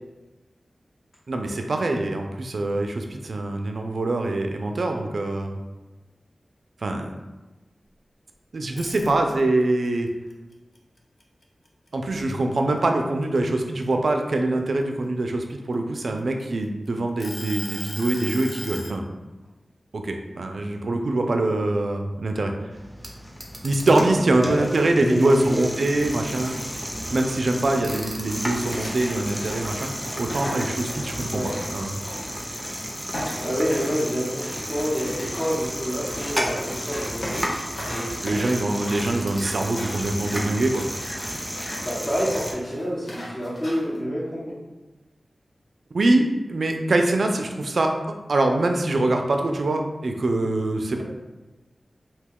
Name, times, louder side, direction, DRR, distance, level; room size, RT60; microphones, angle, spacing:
voice 1, 1.3-5.6 6.8-7.2 8.5-10.1 11.9-19.0 19.9-22.5 23.6-26.6 27.1-32.0 38.2-40.8 45.9-48.0 48.3-51.0, right 2 dB, 75° right, 4 dB, 0.3 m, -24 dB
sound 1, 8.6-9.6 10.1-11.9 12.3-12.6 13.0-14.8 15.5-16.6 17.2-19.0, left 1 dB, 55° left, 0.5 m, -37 dB
sound 2, 22.7-42.5, equal, 5° right, 0.6 m, -33 dB
voice 2, 24.9-25.6 31.3-31.5 33.4-37.4 37.9-38.9 41.8-44.6, equal, 30° left, -10 dB, 0.9 m, -28 dB
sound 3, 28.7-32.7 33.1-44.0, equal, 75° left, 0.8 m, -37 dB
2.7 x 2.2 x 3.5 m, 1.1 s
cardioid pair, 50°, 0 cm